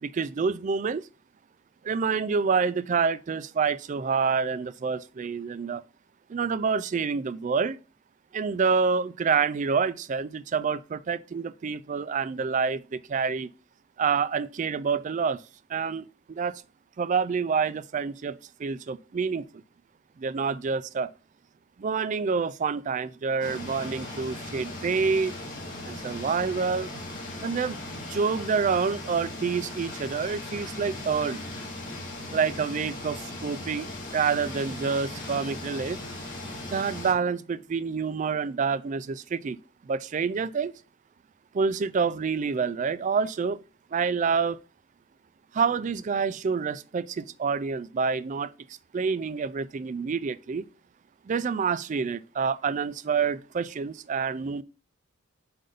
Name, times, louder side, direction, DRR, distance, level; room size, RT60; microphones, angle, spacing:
voice 1, 0.0-1.0 1.8-5.8 6.3-7.8 8.3-13.5 14.0-15.4 15.7-16.6 17.0-19.5 20.2-21.1 21.8-25.4 25.8-26.9 27.4-31.4 32.3-36.0 36.7-39.6 39.8-40.7 41.5-43.6 43.9-44.6 45.5-48.5 48.9-50.6 51.3-54.6, right 5 dB, 35° right, 0.3 m, -27 dB
sound 1, 23.4-37.1, left 2 dB, 40° left, 2.6 m, -38 dB
7.7 x 2.6 x 5.1 m
head